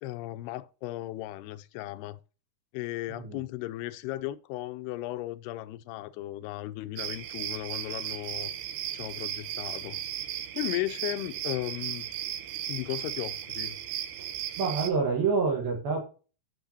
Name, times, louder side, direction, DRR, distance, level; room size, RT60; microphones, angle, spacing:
voice 1, 0.0-2.2 2.7-8.5 8.9-10.0 10.6-12.1 12.7-13.8, left 16 dB, 90° left, 2.6 m, -36 dB
voice 2, 3.1-3.4 14.2-16.1, right 5 dB, 70° right, 3.4 m, -28 dB
sound 1, 7.0-14.9, right 11 dB, 85° right, 2.9 m, -36 dB
14.0 x 5.6 x 2.8 m
omnidirectional pair, 4.5 m